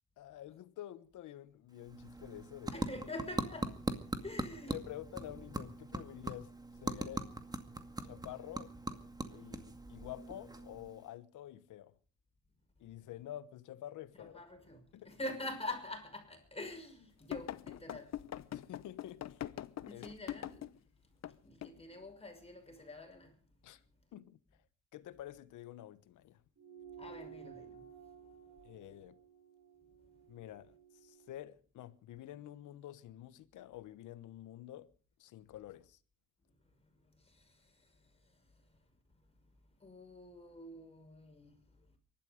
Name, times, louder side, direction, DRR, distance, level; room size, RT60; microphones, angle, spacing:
voice 1, 0.2-2.8 4.7-7.3 8.0-8.7 9.3-12.0 12.8-14.4 14.9-15.1 18.5-19.4 19.9-20.1 20.4-20.5 23.6-23.8 24.1-24.4 24.9-26.4 28.6-29.2 30.3-34.9 35.2-36.0, left 13 dB, 80° left, 1.2 m, -49 dB
sound 1, 1.7-11.1, right 2 dB, 15° right, 2.1 m, -42 dB
voice 2, 2.7-3.8 4.2-4.9 14.2-18.1 19.8-20.7 21.4-23.3 27.0-27.8 37.3-37.6 39.8-41.5, left 1 dB, 20° left, 5.9 m, -45 dB
sound 2, 17.3-20.8 21.2-21.3 21.6-21.8, left 12 dB, 60° left, 0.9 m, -42 dB
sound 3, 26.6-31.4, right 8 dB, 55° right, 5.7 m, -55 dB
23.5 x 12.0 x 5.1 m
cardioid pair, 90°, 30 cm